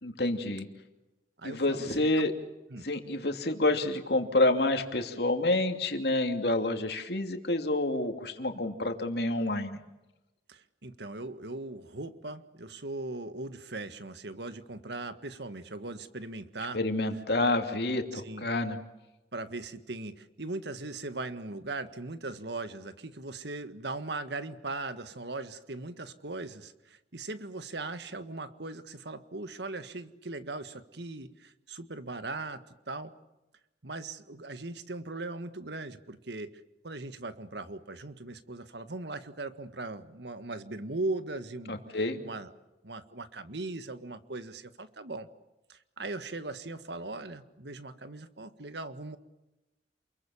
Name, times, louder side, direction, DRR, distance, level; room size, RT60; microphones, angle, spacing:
voice 1, 0.0-0.7 1.4-2.3 2.8-9.8 16.7-18.8 41.7-42.2, left 2 dB, 60° left, 5 dB, 2.8 m, -28 dB
voice 2, 1.4-1.9 2.2-2.3 2.7-2.9 10.5-16.8 18.1-18.4 19.3-33.1 33.8-41.8 42.2-42.5 42.8-45.3 45.7-49.2, right 2 dB, 65° right, 11 dB, 1.7 m, -39 dB
28.5 x 22.5 x 7.3 m, 0.99 s
head